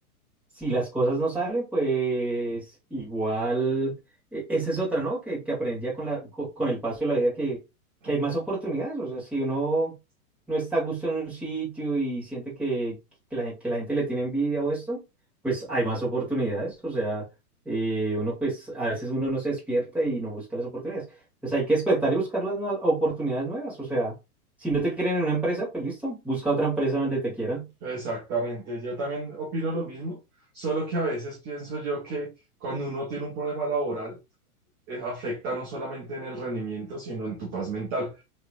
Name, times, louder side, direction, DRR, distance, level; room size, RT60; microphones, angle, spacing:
voice 1, 0.5-2.6 2.9-4.0 4.3-7.6 8.0-10.0 10.5-12.9 13.3-15.0 15.4-17.2 17.6-21.1 21.4-24.1 24.6-27.7, right 2 dB, 5° right, 1.6 m, -27 dB
voice 2, 27.8-30.2 30.5-32.3 32.6-34.2 34.9-38.2, right 2 dB, 20° right, 0.7 m, -31 dB
3.0 x 3.0 x 2.5 m
hypercardioid pair, 145°, 45 cm